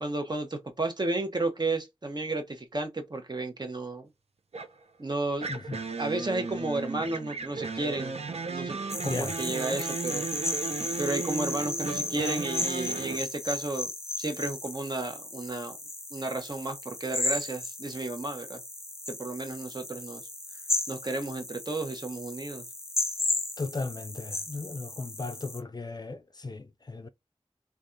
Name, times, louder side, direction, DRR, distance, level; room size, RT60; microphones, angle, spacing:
voice 1, 0.0-4.1 5.0-5.5 6.0-8.2 8.5-8.8 9.0-10.3 11.0-13.9 14.2-15.7 16.1-18.6 19.1-20.2 20.9-22.6, right 2 dB, 40° right, 0.8 m, -32 dB
sound 1, 4.5-4.8 5.4-13.2, right 4 dB, 75° right, 0.5 m, -35 dB
sound 2, 8.9-25.6, left 2 dB, 25° left, 0.7 m, -35 dB
voice 2, 9.0-9.3 23.6-27.1, left 3 dB, 40° left, 0.4 m, -36 dB
3.3 x 2.3 x 2.5 m
wide cardioid pair, 45°, 11 cm